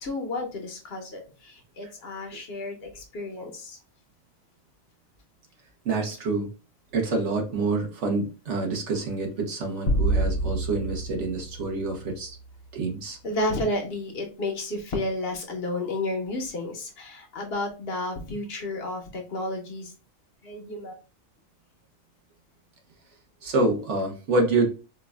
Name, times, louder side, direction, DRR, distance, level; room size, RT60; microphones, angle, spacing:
voice 1, 0.0-3.8 13.2-19.9 20.4-20.9, left 2 dB, 55° left, 3 dB, 0.9 m, -32 dB
voice 2, 5.8-6.5 6.9-12.4 12.7-13.2 23.4-24.7, right 3 dB, 60° right, 2 dB, 1.2 m, -27 dB
sound 1, 9.9-12.4, right 1 dB, 80° left, 1.1 m, -27 dB
4.5 x 2.3 x 2.2 m, 0.32 s
omnidirectional pair, 1.4 m